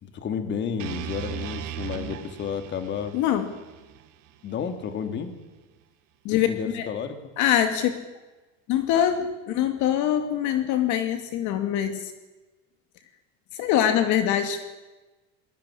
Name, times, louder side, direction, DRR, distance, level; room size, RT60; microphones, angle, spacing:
voice 1, 0.0-3.1 4.4-5.3 6.5-7.2, left 7 dB, 30° left, 8 dB, 2.7 m, -31 dB
sound 1, 0.8-4.9, right 10 dB, 55° right, 3.3 m, -38 dB
voice 2, 3.1-3.5 6.2-6.9 7.4-7.9 8.7-12.1 13.5-14.6, left 10 dB, 55° left, 8 dB, 2.4 m, -24 dB
21.0 x 20.5 x 9.9 m, 1.2 s
supercardioid pair, 150°, 35 cm